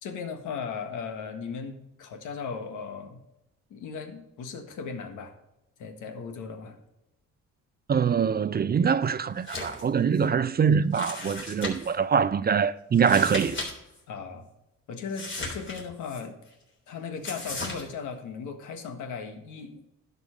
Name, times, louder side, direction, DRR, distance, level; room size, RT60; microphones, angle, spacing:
voice 1, 0.0-3.2 3.7-5.3 5.8-6.8 14.1-14.5 14.9-16.4 16.9-19.8, left 5 dB, 80° left, 1.5 m, -37 dB
voice 2, 7.9-13.6, right 6 dB, 30° right, 0.5 m, -24 dB
sound 1, 9.4-9.8 10.2-10.3 10.9-12.0 12.9-13.7 14.0-14.1 15.1-16.2 17.2-17.8, left 2 dB, 40° left, 3.5 m, -36 dB
11.0 x 5.5 x 5.2 m
cardioid pair, 90°, 30 cm